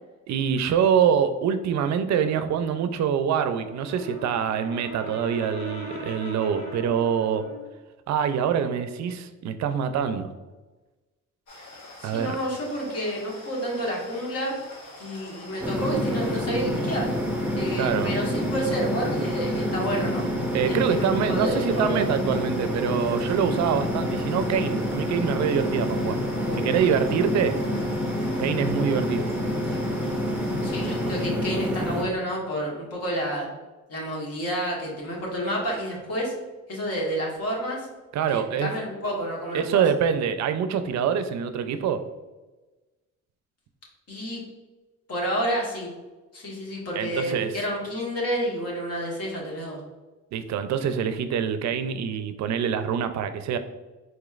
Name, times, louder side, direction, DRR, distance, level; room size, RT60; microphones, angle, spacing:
voice 1, 0.3-7.4 8.1-10.3 12.0-12.4 17.8-18.2 20.5-26.2 26.5-27.6 28.4-29.3 38.1-38.7 39.5-42.0 47.0-47.5 50.3-53.6, right 7 dB, 65° right, 10 dB, 0.4 m, -25 dB
Brass instrument, 3.5-7.7, equal, 25° left, 1.3 m, -39 dB
sound 1, 11.5-31.3, left 2 dB, 75° left, 1.2 m, -45 dB
voice 2, 12.0-14.5 15.0-17.1 17.5-20.2 20.6-22.0 26.4-26.7 30.6-33.5 33.9-36.3 36.7-37.9 38.3-39.8 44.1-44.5 45.1-45.9 46.3-49.8, equal, 55° left, -3 dB, 1.4 m, -30 dB
basement with fridge room tone, 15.6-32.0, equal, 5° right, 0.6 m, -27 dB
4.4 x 3.0 x 2.4 m, 1.2 s
cardioid pair, 90°, 30 cm